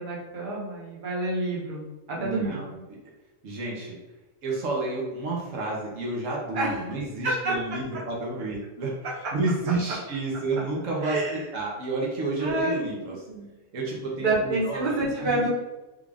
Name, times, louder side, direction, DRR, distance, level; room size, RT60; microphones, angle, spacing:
voice 1, 0.0-2.6 6.5-6.7 7.2-7.5 11.0-11.4 12.4-13.5 14.2-15.5, right 2 dB, 45° right, -5 dB, 1.0 m, -28 dB
voice 2, 2.2-2.8 3.4-4.0 4.4-13.2 13.7-14.9 15.2-15.5, right 2 dB, 75° right, -3 dB, 1.2 m, -30 dB
3.6 x 2.4 x 3.3 m, 1.1 s
omnidirectional pair, 1.3 m